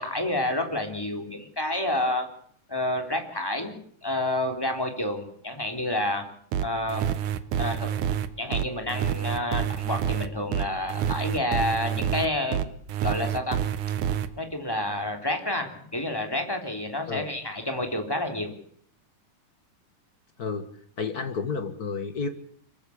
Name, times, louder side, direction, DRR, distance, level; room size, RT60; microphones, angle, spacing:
voice 1, 0.0-2.3 2.7-3.7 4.0-6.2 6.6-7.1 7.6-7.9 8.4-12.6 13.0-13.6 14.3-18.5, left 1 dB, 5° left, 4 dB, 3.0 m, -29 dB
sound 1, 6.5-14.3, right 9 dB, 65° right, 2.4 m, -27 dB
voice 2, 21.0-22.3, left 5 dB, 55° left, 8 dB, 1.0 m, -31 dB
25.5 x 15.0 x 8.7 m, 0.62 s
omnidirectional pair, 4.2 m